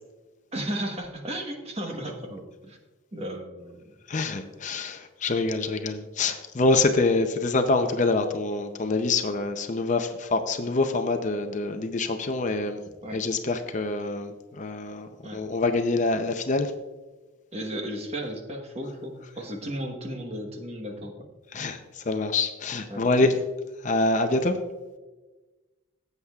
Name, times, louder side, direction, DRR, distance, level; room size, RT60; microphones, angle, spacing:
voice 1, 0.5-2.8 3.1-3.9 13.0-13.2 15.2-15.4 17.5-21.3 22.9-23.3, right 1 dB, 30° right, 3 dB, 1.1 m, -35 dB
voice 2, 4.1-12.8 13.1-16.7 21.5-23.3 23.8-24.6, left 3 dB, 35° left, 7 dB, 0.5 m, -26 dB
16.0 x 8.0 x 2.4 m, 1.2 s
head